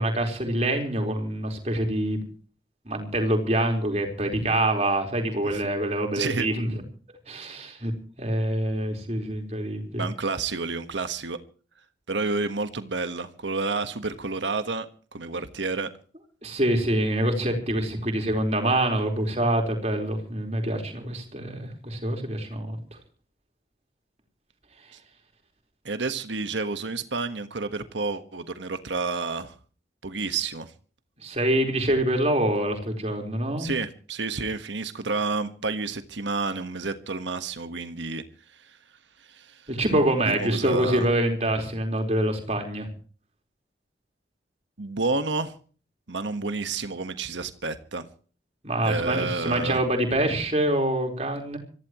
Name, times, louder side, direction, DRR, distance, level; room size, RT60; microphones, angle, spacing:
voice 1, 0.0-2.2 2.9-6.8 7.3-7.9 8.2-10.1 16.4-22.8 31.2-33.7 39.7-42.9 48.6-51.6, right 1 dB, 35° right, 3 dB, 4.4 m, -25 dB
voice 2, 6.1-6.5 10.0-11.4 12.1-15.9 24.9-25.0 25.8-29.5 30.0-30.7 33.6-38.2 38.6-38.8 39.2-39.7 40.2-41.1 44.8-45.5 46.1-48.1 48.8-49.8, right 3 dB, 85° right, 9 dB, 1.5 m, -30 dB
25.5 x 15.5 x 3.1 m, 0.41 s
head